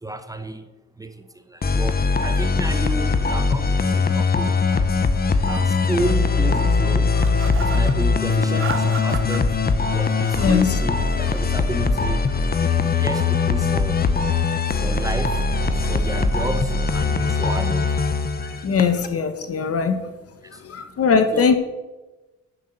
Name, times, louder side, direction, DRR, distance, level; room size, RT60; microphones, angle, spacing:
voice 1, 0.0-0.7 1.0-4.9 5.5-7.2 7.6-9.6 9.9-12.2 12.6-14.0 14.7-15.4 15.8-18.0 20.4-20.6 21.3-21.5, right 1 dB, 10° right, 9 dB, 0.9 m, -31 dB
sound 1, 1.6-19.1, left 4 dB, 30° left, 1.0 m, -21 dB
sound 2, 7.2-8.0 8.5-9.4 10.1-10.7 11.0-11.6, right 6 dB, 45° right, 1.1 m, -35 dB
voice 2, 10.4-10.7 18.6-20.1 20.6-21.6, left 5 dB, 50° left, 9 dB, 1.4 m, -20 dB
10.5 x 6.7 x 7.9 m, 1.1 s
cardioid pair, 90°, 30 cm